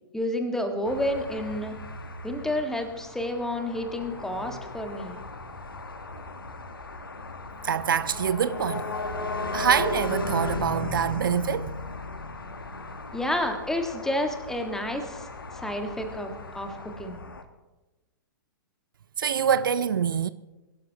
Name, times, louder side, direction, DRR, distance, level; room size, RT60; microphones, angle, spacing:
voice 1, 0.1-1.8 2.2-5.2 13.1-15.3 15.6-17.2, left 1 dB, 5° left, 1.6 m, -30 dB
sound 1, 0.9-17.4, left 2 dB, 85° left, 1.2 m, -36 dB
voice 2, 7.6-8.9 9.5-11.8 19.2-20.3, right 8 dB, 70° right, 0.5 m, -25 dB
22.5 x 12.0 x 2.9 m
figure-of-eight pair, 110°, 12 cm